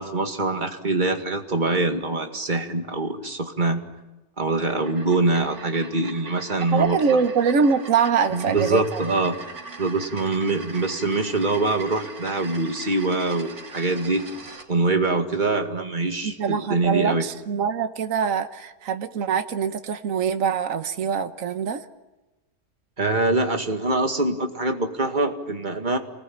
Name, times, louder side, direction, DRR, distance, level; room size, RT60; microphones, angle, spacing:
voice 1, 0.0-3.8 4.4-7.2 8.3-9.4 9.8-14.3 14.7-17.2 23.0-26.0, right 2 dB, 30° right, 5 dB, 2.3 m, -24 dB
sound 1, 4.6-14.7, right 3 dB, 90° right, 3.4 m, -41 dB
voice 2, 6.7-9.0 16.2-21.8, right 6 dB, 65° right, 9 dB, 1.5 m, -23 dB
28.5 x 20.0 x 8.8 m, 1.1 s
omnidirectional pair, 1.5 m